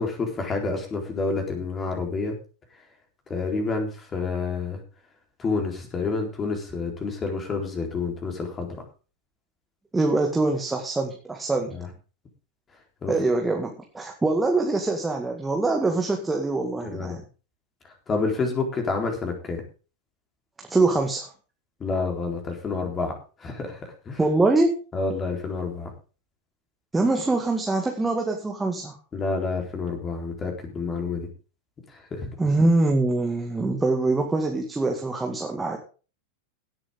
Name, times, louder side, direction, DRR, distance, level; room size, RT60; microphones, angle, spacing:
voice 1, 0.0-2.3 3.3-4.8 5.4-8.8 11.7-11.9 13.0-13.1 16.8-17.2 18.1-19.6 21.8-23.1 23.4-23.8 24.1-24.2 24.9-25.9 29.1-31.3 31.9-32.3, left 4 dB, 20° left, 3 dB, 4.1 m, -28 dB
voice 2, 9.9-11.8 13.1-17.2 20.7-21.3 24.2-24.8 26.9-29.0 32.4-35.8, right 2 dB, 10° right, 2 dB, 2.1 m, -24 dB
17.0 x 8.9 x 3.8 m, 0.35 s
figure-of-eight pair, 90°, 0 cm